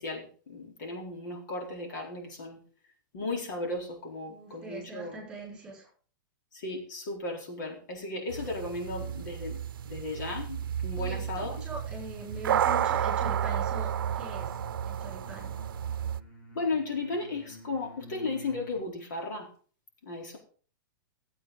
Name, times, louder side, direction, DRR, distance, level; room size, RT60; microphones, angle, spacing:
voice 1, 0.0-2.6 3.1-5.2 6.5-11.5 16.5-19.5 20.0-20.4, left 3 dB, 60° left, 0 dB, 4.1 m, -35 dB
voice 2, 4.3-5.9 11.0-14.6 14.9-15.6, right 1 dB, 5° right, -2 dB, 5.5 m, -42 dB
sound 1, 8.3-16.2, right 9 dB, 90° right, 0.7 m, -32 dB
sound 2, 11.4-18.8, left 1 dB, 15° left, 5.0 m, -51 dB
16.5 x 8.6 x 3.9 m, 0.41 s
supercardioid pair, 175°, 11 cm